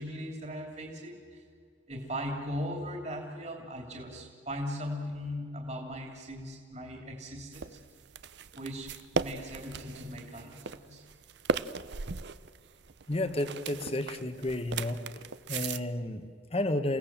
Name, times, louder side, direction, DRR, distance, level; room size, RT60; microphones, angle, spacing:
voice 1, 0.0-1.4 1.9-7.8 8.6-11.0, equal, 35° right, 1 dB, 2.9 m, -38 dB
sound 1, 7.5-15.8, right 4 dB, 65° right, 0.6 m, -37 dB
voice 2, 13.1-15.0 15.5-17.0, left 1 dB, 30° left, 9 dB, 1.3 m, -32 dB
29.0 x 17.5 x 7.4 m, 2.1 s
head